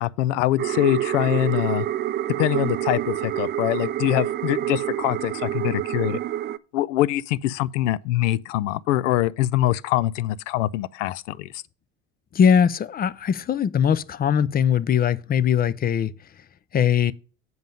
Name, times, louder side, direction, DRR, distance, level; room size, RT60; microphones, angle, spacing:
voice 1, 0.0-1.9 2.4-6.2 6.7-11.5, left 14 dB, 75° left, 0.5 m, -24 dB
sound 1, 0.6-6.6, right 12 dB, 30° right, 0.4 m, -27 dB
voice 2, 12.3-16.1 16.7-17.1, left 8 dB, 25° left, 0.5 m, -20 dB
7.8 x 5.4 x 5.2 m
hypercardioid pair, 75°, 37 cm